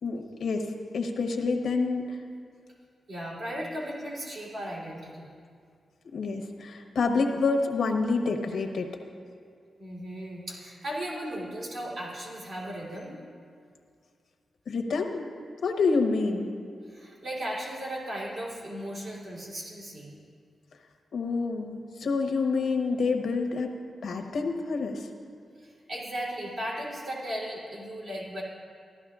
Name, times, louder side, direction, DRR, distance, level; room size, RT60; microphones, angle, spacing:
voice 1, 0.0-2.2 6.1-8.9 14.7-15.3 15.6-16.5 21.1-23.7 24.0-25.1, left 4 dB, 75° left, 3 dB, 1.0 m, -28 dB
voice 2, 3.1-5.3 9.8-13.2 16.9-20.2 25.6-28.4, equal, 65° right, -5 dB, 3.2 m, -36 dB
15.5 x 12.0 x 2.4 m, 2.2 s
wide cardioid pair, 105°, 0 cm